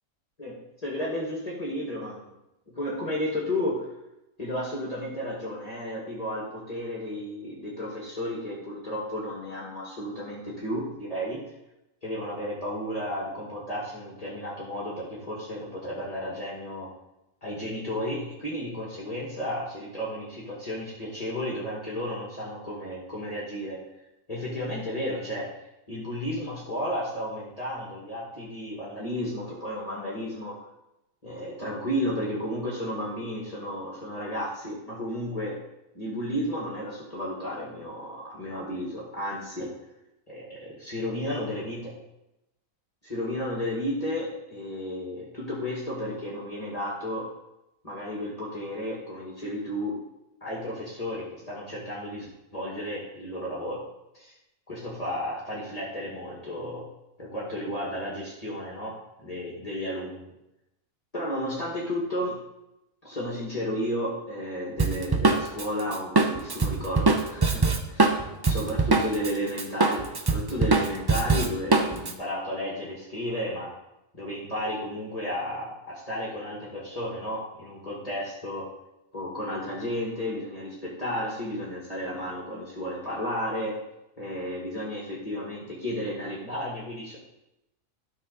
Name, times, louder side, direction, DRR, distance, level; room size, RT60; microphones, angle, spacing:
voice 1, 0.4-2.3 2.7-3.9 4.4-11.4 12.0-16.9 17.4-23.8 24.3-25.5 25.9-30.6 31.2-35.6 35.9-39.7 40.3-41.9 43.0-47.3 47.8-50.0 50.4-53.8 54.1-54.4 54.7-56.9 57.2-60.3 61.1-62.4 63.0-73.7 74.1-78.6 79.1-83.8 84.2-87.2, equal, 25° left, -5 dB, 2.1 m, -33 dB
Drum kit, 64.8-69.3 69.6-72.1, right 3 dB, 35° right, 0.3 m, -23 dB
12.5 x 5.8 x 4.1 m, 0.90 s
omnidirectional pair, 1.5 m